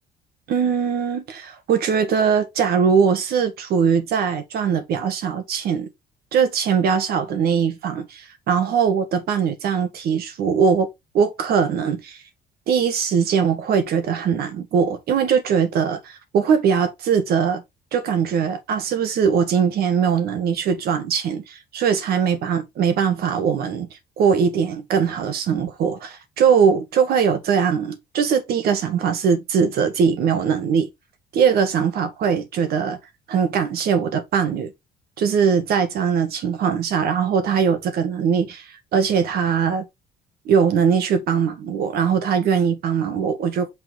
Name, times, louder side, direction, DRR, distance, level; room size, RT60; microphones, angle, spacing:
voice 1, 0.5-5.9 6.3-10.9 11.1-12.2 12.7-17.6 17.9-30.9 31.3-33.0 33.3-34.7 35.2-39.8 40.4-43.7, right 6 dB, 65° right, 1.7 m, -21 dB
5.9 x 4.5 x 3.9 m
cardioid pair, 110°, 17 cm